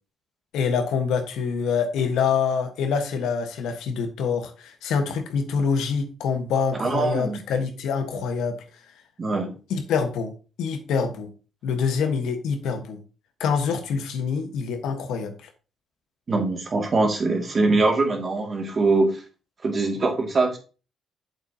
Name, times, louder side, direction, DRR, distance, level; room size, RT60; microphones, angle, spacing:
voice 1, 0.5-8.6 9.7-10.3 10.6-11.3 11.6-13.0 13.4-15.5, left 6 dB, 85° left, 6 dB, 1.4 m, -25 dB
voice 2, 6.8-7.4 9.2-9.5 16.3-19.2 19.6-20.6, right 3 dB, 40° right, 2 dB, 2.4 m, -22 dB
8.2 x 7.6 x 2.9 m, 0.34 s
cardioid pair, 90°, 0 cm